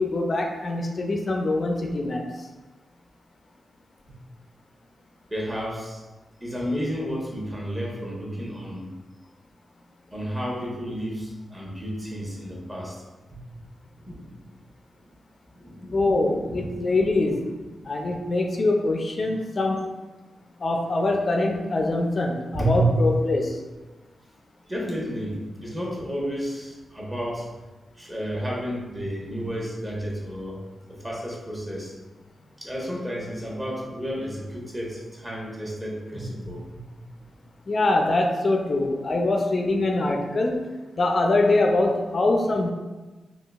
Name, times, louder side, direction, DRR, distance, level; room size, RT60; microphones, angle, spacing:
voice 1, 0.0-2.5 15.9-17.4 17.8-19.9 20.6-23.6 37.7-40.7 41.0-42.7, left 2 dB, 55° left, 2 dB, 0.4 m, -23 dB
voice 2, 5.3-6.0 6.4-8.9 10.1-13.0 13.3-13.4 14.0-14.4 15.0-15.1 15.5-16.0 16.4-16.8 22.5-23.0 24.7-27.5 27.9-30.6 30.9-32.0 32.6-37.0, right 1 dB, 20° right, -3 dB, 1.0 m, -31 dB
3.7 x 2.3 x 2.3 m, 1.2 s
supercardioid pair, 45°, 0 cm